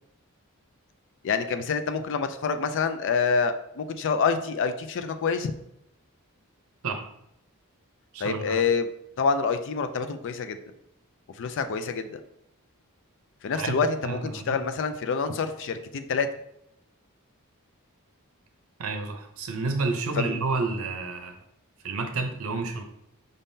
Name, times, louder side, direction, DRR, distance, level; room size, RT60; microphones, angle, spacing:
voice 1, 1.2-5.5 8.2-8.9 9.2-10.6 11.4-12.2 13.4-16.3 20.2-20.4, left 5 dB, 55° left, 10 dB, 0.4 m, -27 dB
voice 2, 8.1-8.6 13.5-14.6 18.8-21.3 21.8-22.8, right 3 dB, 65° right, 5 dB, 0.7 m, -30 dB
5.2 x 3.6 x 2.7 m, 0.78 s
head